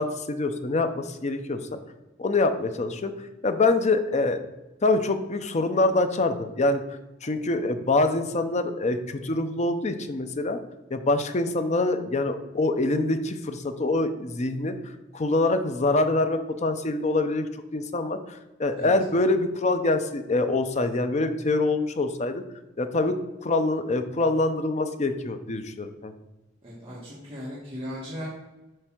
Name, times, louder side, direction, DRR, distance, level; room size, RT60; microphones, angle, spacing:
voice 1, 0.0-1.8 2.2-4.4 4.8-6.8 7.2-10.6 10.9-14.7 15.1-17.5 17.7-22.4 22.8-23.2 23.4-26.1, left 2 dB, 35° left, 9 dB, 0.6 m, -25 dB
voice 2, 26.6-28.3, equal, 30° right, -8 dB, 1.6 m, -37 dB
7.9 x 3.3 x 6.0 m, 1.1 s
head